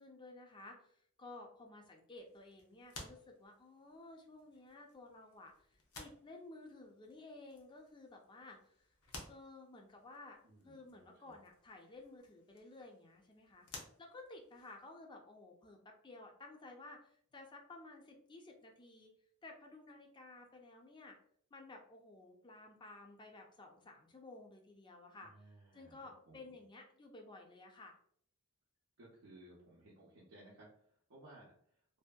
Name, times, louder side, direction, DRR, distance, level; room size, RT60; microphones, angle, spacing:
voice 1, 0.0-8.8 9.3-10.4 10.6-19.1 19.4-21.2 21.5-25.3 25.7-28.0, left 2 dB, 20° left, 2 dB, 0.4 m, -54 dB
sound 1, 2.1-15.0, left 3 dB, 65° left, 0.6 m, -57 dB
voice 2, 10.4-11.4 25.2-26.6 29.0-31.8, right 1 dB, 65° right, -5 dB, 0.6 m, -60 dB
2.7 x 2.5 x 2.2 m, 0.62 s
head